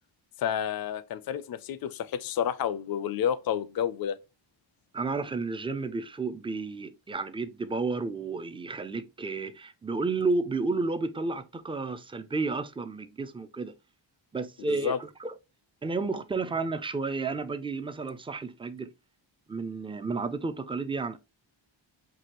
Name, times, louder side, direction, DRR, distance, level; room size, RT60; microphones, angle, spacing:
voice 1, 0.4-4.2 14.6-15.0, left 9 dB, 50° left, 0.4 m, -30 dB
voice 2, 4.9-13.7 14.3-15.3 15.8-18.9 19.5-21.2, right 3 dB, 15° right, 0.3 m, -32 dB
6.1 x 2.7 x 2.9 m
wide cardioid pair, 130°, 47 cm